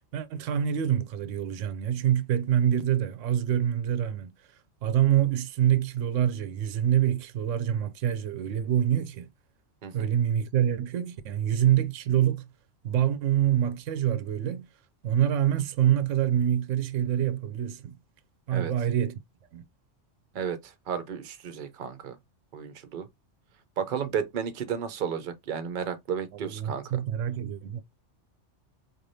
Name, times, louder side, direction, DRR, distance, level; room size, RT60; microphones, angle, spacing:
voice 1, 0.1-4.3 4.8-9.3 9.9-12.5 12.8-14.7 15.0-17.9 18.5-19.2 19.5-19.6 26.3-27.8, right 10 dB, 85° right, 0.9 m, -26 dB
voice 2, 20.3-22.2 22.5-23.1 23.8-26.8, right 7 dB, 50° right, 0.8 m, -33 dB
4.2 x 3.2 x 2.6 m
omnidirectional pair, 1.3 m